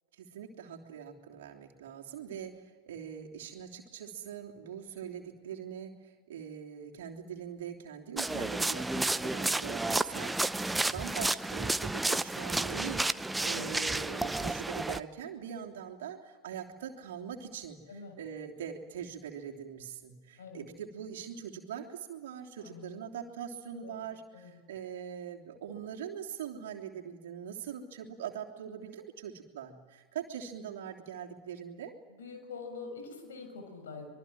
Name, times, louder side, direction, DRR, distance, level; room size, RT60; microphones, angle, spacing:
voice 1, 0.1-10.7 10.9-13.0 13.4-31.9, right 8 dB, 55° right, 0 dB, 3.2 m, -42 dB
sound 1, 8.2-15.0, right 2 dB, 5° right, 0.7 m, -31 dB
voice 2, 8.9-9.3 13.5-13.8 17.9-18.2 20.4-20.6 22.6-23.0 23.8-24.1 24.3-24.5 32.2-34.1, left 4 dB, 65° left, 5 dB, 7.1 m, -45 dB
26.0 x 23.0 x 7.7 m, 1.5 s
figure-of-eight pair, 90°, 0 cm